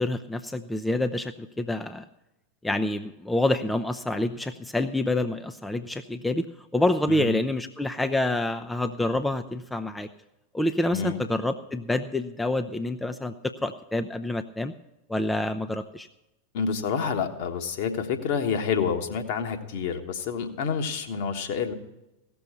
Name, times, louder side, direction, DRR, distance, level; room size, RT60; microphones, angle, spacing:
voice 1, 0.0-2.0 2.6-6.5 6.7-10.1 10.5-14.7 15.1-16.1, left 1 dB, 5° left, 8 dB, 0.5 m, -27 dB
voice 2, 16.5-21.7, left 6 dB, 50° left, 5 dB, 1.4 m, -28 dB
16.5 x 6.9 x 6.7 m, 0.95 s
figure-of-eight pair, 90°, 0 cm